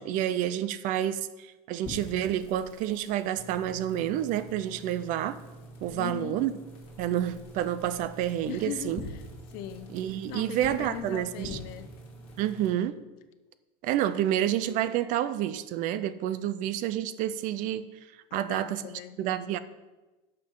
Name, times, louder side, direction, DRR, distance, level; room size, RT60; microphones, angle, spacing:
voice 1, 0.0-5.4 5.8-6.5 7.0-9.0 9.9-11.6 12.4-12.9 13.8-17.9 18.3-18.8 19.2-19.6, right 11 dB, 45° right, 14 dB, 0.5 m, -29 dB
sound 1, 1.8-12.7, left 3 dB, 30° left, 2.4 m, -48 dB
sound 2, 3.3-12.8, right 2 dB, 10° left, 1.6 m, -48 dB
voice 2, 5.9-6.5 8.5-9.2 9.5-10.0 10.3-11.9 18.3-19.2, left 11 dB, 50° left, 10 dB, 0.7 m, -39 dB
11.5 x 6.7 x 3.8 m, 1.1 s
supercardioid pair, 155°, 20 cm